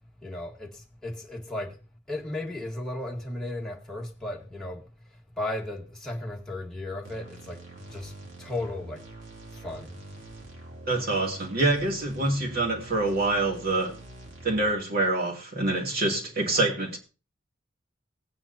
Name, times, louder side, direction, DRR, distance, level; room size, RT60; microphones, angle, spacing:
voice 1, 0.2-1.8 2.1-9.0 9.5-10.1, left 1 dB, 5° left, 1.5 m, -36 dB
sound 1, 7.0-14.7, right 2 dB, 75° right, 2.6 m, -45 dB
voice 2, 10.9-14.0 14.4-17.0, right 2 dB, 50° right, 2.6 m, -26 dB
17.5 x 9.1 x 2.8 m
head